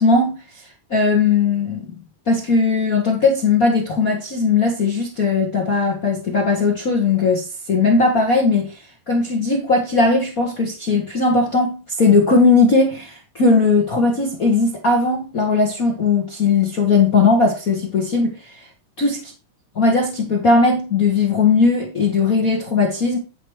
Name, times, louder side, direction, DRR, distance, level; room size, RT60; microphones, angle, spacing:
voice 1, 0.0-1.8 2.3-18.7 19.0-19.2 19.8-23.2, left 4 dB, 60° left, 0.9 m, -18 dB
9.9 x 4.6 x 4.7 m
omnidirectional pair, 3.8 m